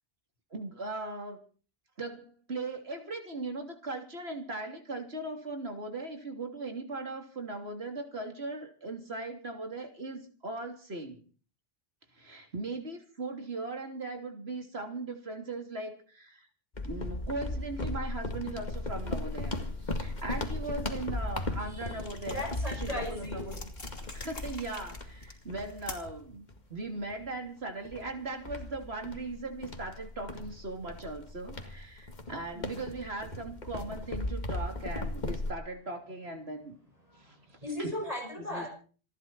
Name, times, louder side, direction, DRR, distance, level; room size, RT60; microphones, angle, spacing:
voice 1, 0.5-1.4 2.0-11.2 12.1-16.5 16.8-22.5 22.8-23.7 24.1-36.8 37.2-37.4 37.8-37.9 38.5-38.7, right 2 dB, 80° right, 4 dB, 3.3 m, -39 dB
sound 1, 16.7-26.6 27.1-27.3 27.8-35.5, left 2 dB, 45° left, 2.1 m, -37 dB
sound 2, 21.9-26.3, left 2 dB, 65° left, 3.2 m, -47 dB
voice 2, 22.3-23.5 32.5-32.6 37.1-38.7, left 1 dB, 35° right, 1 dB, 6.3 m, -38 dB
27.5 x 11.0 x 4.4 m, 0.40 s
omnidirectional pair, 1.1 m